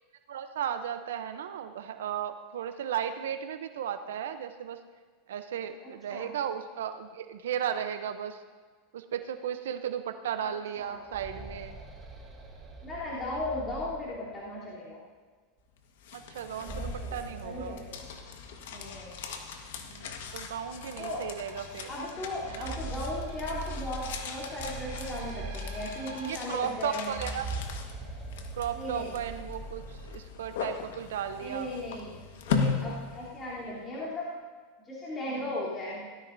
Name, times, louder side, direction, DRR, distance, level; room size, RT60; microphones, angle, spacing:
voice 1, 0.3-4.8 5.3-8.4 8.9-11.8 16.1-17.8 19.8-21.9 22.5-22.7 26.3-27.5 28.5-31.7 35.3-35.6, right 9 dB, 90° right, 9 dB, 0.6 m, -35 dB
sound 1, 10.8-14.6 16.3-18.5 18.9-19.0 19.8-19.9 20.4-20.6 22.2-26.3 27.0-30.4, right 2 dB, 15° right, 2.4 m, -41 dB
voice 2, 12.8-15.0 16.6-17.2 17.4-18.0 18.7-19.2 21.0-21.2 21.9-27.2 28.7-29.2 31.4-32.1 32.5-34.3 34.8-36.0, left 1 dB, 25° left, -9 dB, 3.2 m, -37 dB
sound 2, 15.8-33.8, left 5 dB, 80° left, 1.4 m, -39 dB
sound 3, 20.2-26.3, right 4 dB, 70° right, 3.4 m, -50 dB
17.0 x 13.0 x 2.6 m, 1.5 s
supercardioid pair, 130°, 0 cm